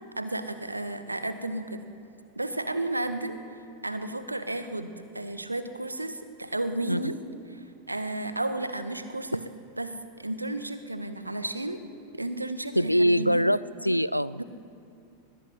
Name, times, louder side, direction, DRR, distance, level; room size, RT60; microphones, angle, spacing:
voice 1, 0.1-1.9 2.3-3.4 3.8-7.2 7.5-9.5 9.8-11.8 12.1-13.4 14.3-14.4, right 2 dB, 85° right, 10 dB, 1.5 m, -33 dB
voice 2, 12.7-14.4, equal, 90° left, 19 dB, 0.5 m, -24 dB
22.5 x 20.5 x 8.0 m, 2.7 s
figure-of-eight pair, 90°, 0 cm